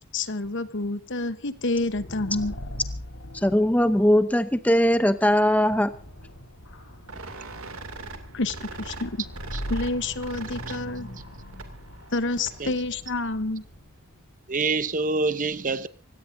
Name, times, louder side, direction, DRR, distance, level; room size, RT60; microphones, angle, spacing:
voice 1, 0.1-2.5 8.3-9.2 9.7-11.1 12.1-13.6, left 2 dB, 55° left, 1.1 m, -28 dB
sound 1, 1.6-14.2, equal, 70° left, 3.8 m, -41 dB
voice 2, 3.4-5.9, equal, 5° left, 0.7 m, -20 dB
sound 2, 7.1-12.8, right 3 dB, 65° right, 2.6 m, -42 dB
voice 3, 14.5-15.9, right 3 dB, 35° right, 0.8 m, -26 dB
25.5 x 17.0 x 2.7 m
head